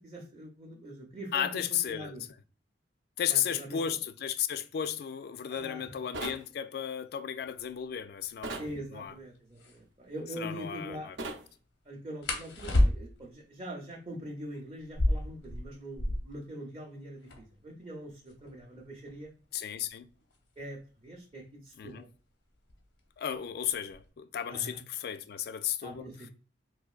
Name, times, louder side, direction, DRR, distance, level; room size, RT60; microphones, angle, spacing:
voice 1, 0.0-1.5 1.9-2.2 3.3-3.8 5.5-6.0 8.6-11.2 11.8-19.3 20.6-22.1 24.5-24.8 25.8-26.3, right 1 dB, 30° right, 0.6 m, -43 dB
voice 2, 1.3-2.2 3.2-9.1 10.4-11.2 19.5-20.1 21.8-22.0 23.2-26.1, left 9 dB, 55° left, 0.3 m, -34 dB
sound 1, 6.1-6.4 8.4-8.7 11.2-11.4, right 2 dB, 80° right, 0.6 m, -37 dB
sound 2, 9.1-9.2 9.5-9.8 12.2-13.3 14.8-16.4 16.7-16.8 17.0-17.6 18.3-20.8 21.8-22.1 22.5-23.0 23.3-24.1, left 1 dB, 80° left, 0.8 m, -30 dB
3.9 x 2.5 x 2.3 m
head